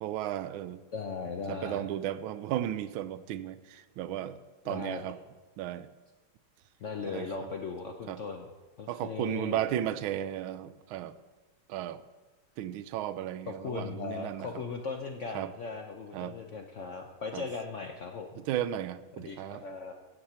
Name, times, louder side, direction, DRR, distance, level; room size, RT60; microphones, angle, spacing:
voice 1, 0.0-0.8 1.5-4.4 4.6-5.2 5.6-5.9 7.0-7.3 8.1-8.2 8.9-11.1 11.7-12.0 12.6-14.5 15.3-15.5 16.1-16.3 17.3-17.4 18.5-19.6, right 11 dB, 90° right, 13 dB, 1.4 m, -34 dB
voice 2, 0.9-1.9 4.6-5.0 6.8-8.5 8.8-9.6 13.5-18.3 19.2-19.9, left 5 dB, 75° left, 3 dB, 0.6 m, -38 dB
15.5 x 7.6 x 4.3 m, 1.2 s
omnidirectional pair, 2.2 m